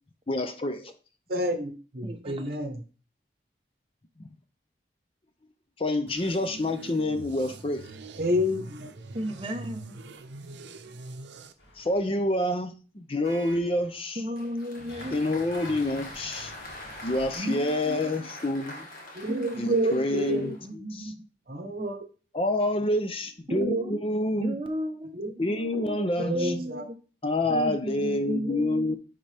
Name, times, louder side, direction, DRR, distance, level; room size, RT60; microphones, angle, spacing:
voice 1, 0.3-0.9 4.2-4.3 5.8-7.9 11.8-14.2 15.1-16.5 17.0-18.9 19.6-20.6 20.9-21.1 22.3-24.6 25.4-26.5 27.2-29.0, left 1 dB, 30° left, 9 dB, 0.5 m, -27 dB
voice 2, 1.3-2.8 8.2-8.9 19.1-20.5 21.5-22.0 23.5-24.0 25.1-26.8, equal, 55° right, 6 dB, 1.1 m, -29 dB
voice 3, 2.0-2.5 9.1-9.9 14.2-15.2 17.3-18.3 19.3-21.2 23.5-24.0 24.4-25.2 25.6-26.0 26.3-26.9 27.5-29.0, equal, 30° right, 5 dB, 0.8 m, -35 dB
sound 1, 6.1-11.5, right 3 dB, 80° right, 0.7 m, -43 dB
sound 2, 11.6-12.3 13.2-14.2 14.8-17.4, equal, 80° left, 2.3 m, -47 dB
Applause, 14.4-20.7, left 1 dB, 45° left, 1.6 m, -44 dB
9.6 x 3.7 x 3.4 m, 0.36 s
head